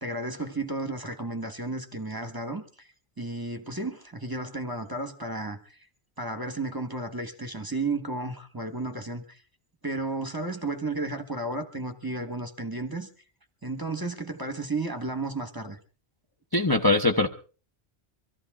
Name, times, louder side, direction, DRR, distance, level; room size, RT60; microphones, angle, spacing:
voice 1, 0.0-2.9 3.2-5.8 6.2-9.4 9.8-13.1 13.6-15.8, right 2 dB, 20° right, 1.3 m, -33 dB
voice 2, 16.5-17.3, left 2 dB, 20° left, 0.9 m, -21 dB
24.5 x 14.0 x 3.6 m
omnidirectional pair, 1.1 m